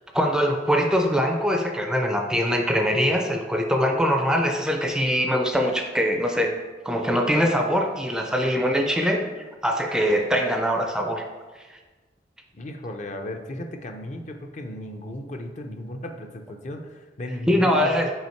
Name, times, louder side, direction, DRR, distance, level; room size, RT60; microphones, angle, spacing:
voice 1, 0.1-6.6 6.8-9.3 9.6-11.2 17.5-18.1, equal, 5° right, 3 dB, 0.5 m, -22 dB
voice 2, 12.5-17.9, left 1 dB, 45° left, 5 dB, 0.6 m, -35 dB
5.6 x 4.9 x 4.5 m, 1.3 s
head